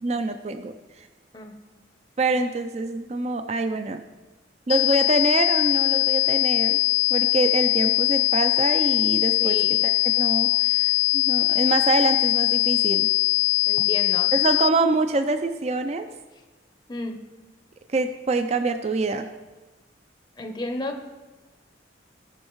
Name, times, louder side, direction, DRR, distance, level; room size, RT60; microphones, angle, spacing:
voice 1, 0.0-1.1 2.2-4.0 4.7-6.8 7.1-9.6 9.8-13.1 14.3-16.1 17.9-19.3, right 3 dB, 35° right, 8 dB, 0.4 m, -25 dB
sound 1, 4.7-14.7, left 18 dB, 65° left, 0.4 m, -21 dB
voice 2, 9.4-9.9 13.7-14.3 16.9-17.2 20.4-21.0, left 1 dB, 25° left, 4 dB, 0.7 m, -32 dB
16.5 x 6.4 x 3.1 m, 1.2 s
head